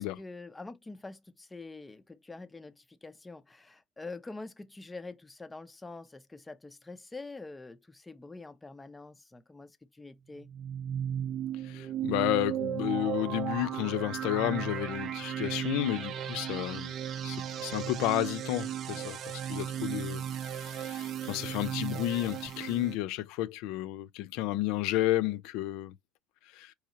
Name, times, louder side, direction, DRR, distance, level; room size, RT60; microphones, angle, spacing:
voice 1, 0.0-10.5 18.9-19.1, left 3 dB, 10° left, 0.6 m, -46 dB
sound 1, 10.4-23.0, right 10 dB, 45° right, 0.5 m, -35 dB
voice 2, 11.6-16.9 17.2-20.2 20.5-25.9 26.5-26.7, left 15 dB, 75° left, 0.3 m, -32 dB
4.6 x 3.0 x 2.7 m
cardioid pair, 125°, 0 cm